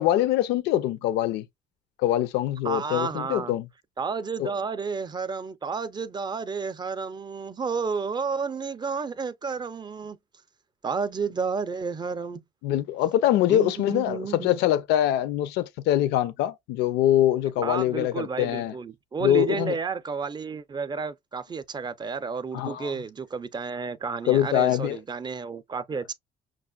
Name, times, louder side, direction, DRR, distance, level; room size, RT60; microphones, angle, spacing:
voice 1, 0.0-1.4 2.0-3.7 4.4-4.5 12.6-18.8 19.2-19.7 22.5-22.9 24.3-25.0, left 12 dB, 85° left, 0.5 m, -24 dB
voice 2, 2.6-3.5 4.0-10.2 10.8-12.4 13.5-14.6 17.6-26.1, right 5 dB, 25° right, 0.6 m, -31 dB
5.9 x 2.5 x 2.3 m
cardioid pair, 110°, 17 cm